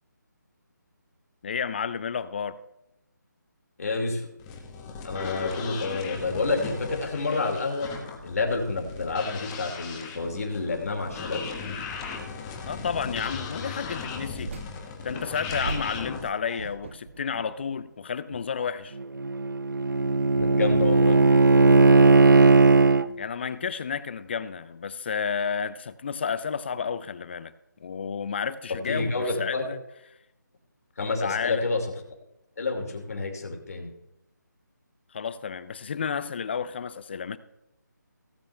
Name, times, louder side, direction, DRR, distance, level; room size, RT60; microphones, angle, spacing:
voice 1, 1.4-2.6 12.6-14.5 15.0-19.0 23.2-27.5 27.8-29.1 29.4-29.8 31.2-31.6 35.1-37.4, left 6 dB, 35° left, 0.6 m, -31 dB
voice 2, 3.8-4.3 5.0-7.9 8.2-11.4 16.5-16.6 20.3-21.2 28.9-29.6 31.0-31.9 32.6-33.9, left 3 dB, 50° left, 2.8 m, -29 dB
sound 1, 4.4-16.3, left 5 dB, 15° left, 1.3 m, -37 dB
sound 2, 14.2-16.2 16.6-17.9 18.3-18.4, right 3 dB, 40° right, 0.9 m, -39 dB
Bowed string instrument, 19.0-23.1, right 3 dB, 90° right, 0.6 m, -18 dB
17.5 x 8.6 x 3.3 m
figure-of-eight pair, 155°, 10 cm